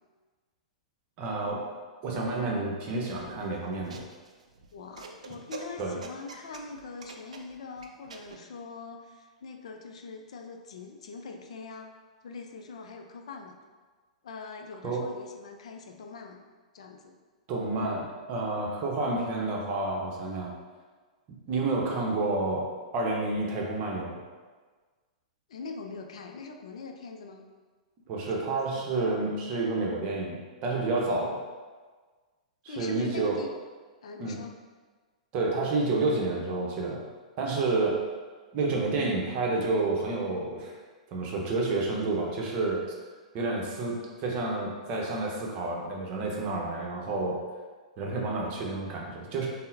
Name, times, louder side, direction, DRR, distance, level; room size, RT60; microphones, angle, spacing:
voice 1, 1.2-1.6 2.0-4.0 5.8-6.0 14.8-15.1 17.5-20.5 21.5-24.2 28.1-31.4 32.6-33.4 34.2-34.4 35.3-37.0 37.4-38.0 38.5-40.7 41.1-42.8 43.3-47.4 48.0-49.5, right 3 dB, 35° right, -1 dB, 0.7 m, -29 dB
sound 1, 3.2-8.4, right 4 dB, 70° right, 0.4 m, -46 dB
voice 2, 4.7-11.9 12.2-13.6 14.2-16.4 16.7-17.2 25.5-27.4 28.3-28.4 28.7-28.9 31.1-31.3 32.7-33.5 34.0-34.5, left 4 dB, 60° left, 3 dB, 0.4 m, -43 dB
5.5 x 2.1 x 2.6 m, 1.4 s
figure-of-eight pair, 105°, 4 cm